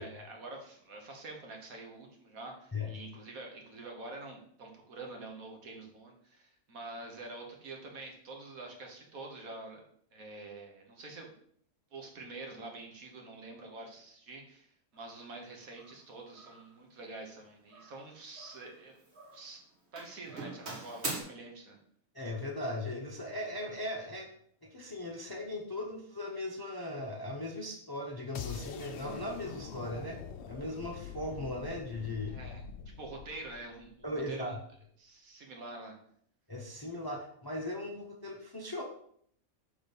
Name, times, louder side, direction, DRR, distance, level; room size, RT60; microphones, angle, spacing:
voice 1, 0.0-9.8 10.1-11.3 11.9-19.0 19.3-19.6 19.9-21.8 32.3-32.6 33.0-34.6 35.0-35.9, right 2 dB, 75° right, 1 dB, 1.7 m, -46 dB
Doorbell, 15.0-15.2 15.7-16.0 16.3-16.7 17.7-18.8 19.0-19.5 20.0-21.2, right 2 dB, 50° right, 1.6 m, -42 dB
voice 2, 22.1-24.3 24.6-30.2 30.5-32.4 34.0-34.6 36.5-38.8, left 1 dB, 25° left, 2 dB, 0.5 m, -38 dB
sound 1, 28.3-34.3, left 7 dB, 65° left, 0.7 m, -45 dB
6.0 x 4.0 x 5.3 m, 0.66 s
omnidirectional pair, 1.5 m